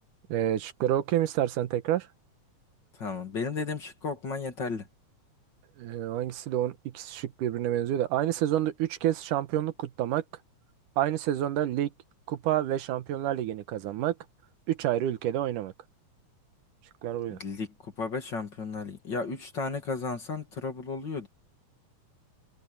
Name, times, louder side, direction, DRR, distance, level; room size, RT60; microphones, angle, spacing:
voice 1, 0.3-2.1 5.8-10.2 11.0-11.9 12.3-14.2 14.7-15.7 17.0-17.4, right 12 dB, 85° right, 2.6 m, -28 dB
voice 2, 3.0-4.9 17.3-21.3, left 4 dB, 40° left, 2.4 m, -34 dB
omnidirectional pair, 3.6 m